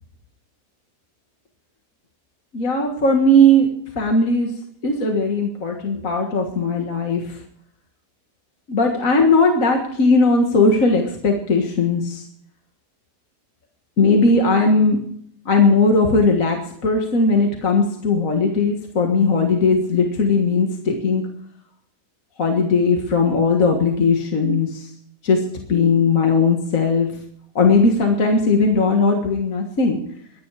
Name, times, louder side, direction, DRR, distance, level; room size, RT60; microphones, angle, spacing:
voice 1, 2.5-3.7 4.0-4.5 4.8-7.4 8.7-12.2 14.0-15.0 15.5-21.2 22.4-24.9 25.2-25.4 25.7-27.1 27.6-30.0, left 2 dB, 55° left, 2 dB, 2.1 m, -18 dB
23.0 x 10.0 x 4.9 m, 0.65 s
omnidirectional pair, 1.7 m